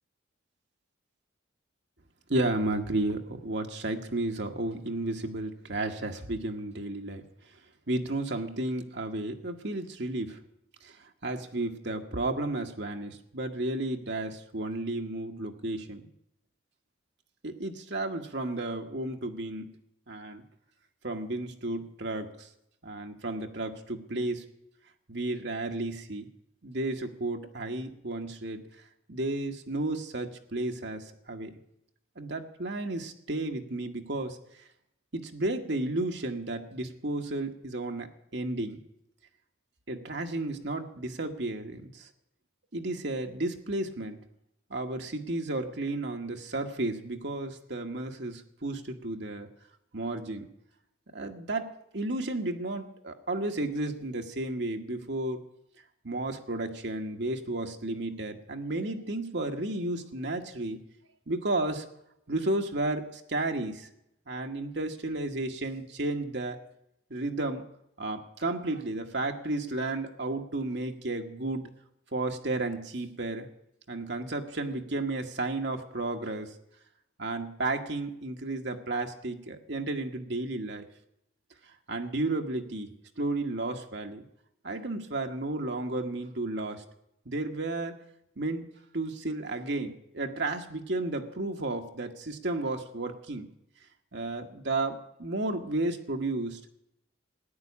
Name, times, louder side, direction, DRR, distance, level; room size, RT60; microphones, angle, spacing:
voice 1, 2.3-7.2 7.9-10.4 10.8-11.0 11.2-16.1 17.4-19.7 20.1-20.4 21.0-22.5 22.8-24.4 25.1-26.3 26.6-28.6 29.1-31.5 32.2-34.4 35.1-38.8 39.9-42.1 42.7-44.2 44.7-49.5 49.9-50.5 51.1-55.5 56.0-60.8 61.3-61.8 62.3-63.9 64.3-66.6 67.1-67.6 68.0-71.7 72.1-73.5 73.9-76.5 77.2-80.8 81.9-84.2 84.6-86.8 87.2-87.9 88.4-88.7 88.9-93.5 94.1-96.6, right 2 dB, 55° right, 3 dB, 1.4 m, -33 dB
15.0 x 9.8 x 8.4 m, 0.80 s
head